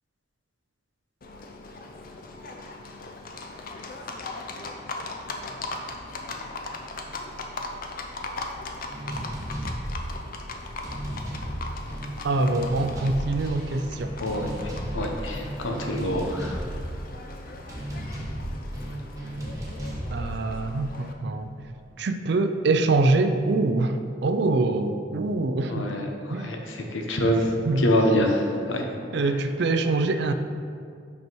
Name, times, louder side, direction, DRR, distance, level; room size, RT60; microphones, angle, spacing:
Livestock farm animals working animals, 1.2-21.1, left 2 dB, 45° left, 0.5 m, -39 dB
sound 1, 8.9-21.6, equal, 15° right, 1.0 m, -35 dB
voice 1, 12.2-14.1 20.1-21.5 22.0-25.9 26.3-26.5 27.6-27.8 29.1-30.3, right 2 dB, 60° right, 8 dB, 0.4 m, -24 dB
voice 2, 14.2-16.6 25.7-28.9 29.2-29.3, equal, 85° left, 2 dB, 0.9 m, -26 dB
5.7 x 5.5 x 4.6 m, 2.2 s
head